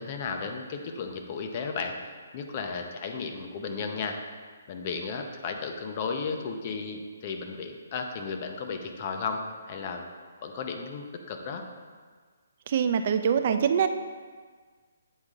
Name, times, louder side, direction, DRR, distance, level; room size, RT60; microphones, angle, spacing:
voice 1, 0.0-2.0 2.3-4.2 4.7-10.0 10.4-11.6, left 5 dB, 40° left, 4 dB, 0.7 m, -34 dB
voice 2, 12.7-13.9, right 7 dB, 45° right, 9 dB, 0.3 m, -24 dB
8.1 x 3.7 x 3.6 m, 1.6 s
hypercardioid pair, 150°, 0 cm